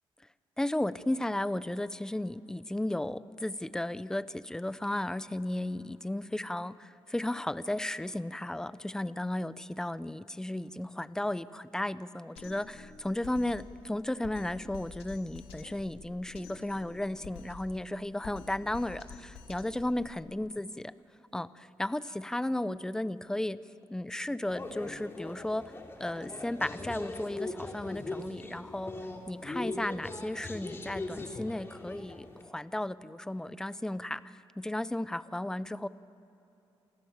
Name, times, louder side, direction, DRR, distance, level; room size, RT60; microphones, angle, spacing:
voice 1, 0.6-20.9 21.3-23.6 23.9-25.7 26.0-28.9 29.3-35.9, left 1 dB, 5° left, 15 dB, 0.6 m, -34 dB
Drum kit, 12.4-20.3, left 5 dB, 90° left, 3.2 m, -49 dB
sound 1, 24.5-32.4, left 2 dB, 25° left, 3.0 m, -40 dB
28.5 x 28.0 x 7.3 m, 2.9 s
cardioid pair, 125°, 10 cm